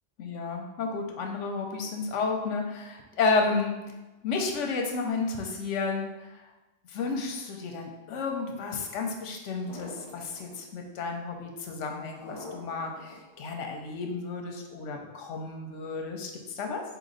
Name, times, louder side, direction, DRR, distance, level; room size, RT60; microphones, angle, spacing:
voice 1, 0.2-3.8 4.2-6.5 6.9-16.8, left 4 dB, 80° left, 3 dB, 1.0 m, -32 dB
sound 1, 9.7-10.6 12.2-13.2, left 2 dB, 25° left, 0.6 m, -43 dB
4.1 x 3.0 x 3.9 m, 1.1 s
omnidirectional pair, 1.3 m